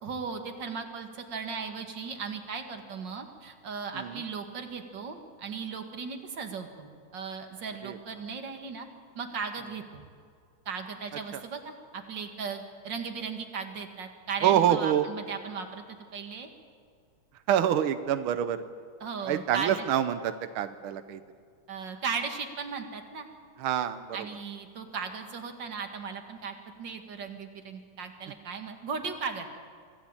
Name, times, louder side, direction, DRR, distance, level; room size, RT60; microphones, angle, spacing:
voice 1, 0.0-8.9 9.2-10.0 10.7-15.8 16.1-16.5 19.0-19.9 21.7-23.3 24.1-29.5, right 5 dB, 40° right, 5 dB, 2.3 m, -37 dB
voice 2, 14.4-15.1 17.5-18.6 19.2-21.2 23.6-24.3, right 10 dB, 85° right, 10 dB, 1.1 m, -26 dB
25.5 x 16.0 x 8.8 m, 2.2 s
omnidirectional pair, 3.5 m